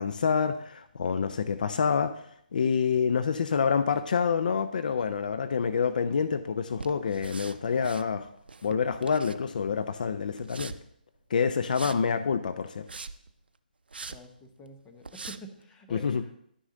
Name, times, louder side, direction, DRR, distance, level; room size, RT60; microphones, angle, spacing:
voice 1, 0.0-2.2 2.5-8.3 8.6-10.7 11.3-12.9 15.9-16.2, left 6 dB, 55° left, 11 dB, 0.5 m, -27 dB
sound 1, 6.8-8.1 8.4-9.7 10.4-10.8 11.7-12.0 12.7-13.3 13.9-14.2 14.7-14.8 15.0-15.4, right 4 dB, 80° right, 0.5 m, -41 dB
voice 2, 14.1-16.4, equal, 15° left, 3 dB, 0.9 m, -48 dB
11.0 x 6.3 x 3.8 m, 0.68 s
figure-of-eight pair, 150°, 5 cm